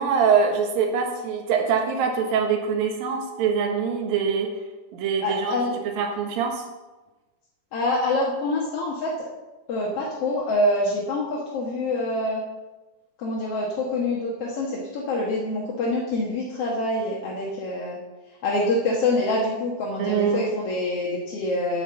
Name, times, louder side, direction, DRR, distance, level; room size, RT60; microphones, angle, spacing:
voice 1, 0.0-4.5 4.9-5.6 6.0-6.6 20.0-20.5, right 6 dB, 75° right, 3 dB, 3.1 m, -23 dB
voice 2, 5.2-5.7 7.7-9.1 9.7-12.4 13.2-18.0 18.4-21.8, left 2 dB, 55° left, -4 dB, 1.9 m, -26 dB
9.2 x 7.8 x 7.0 m, 1.1 s
omnidirectional pair, 4.3 m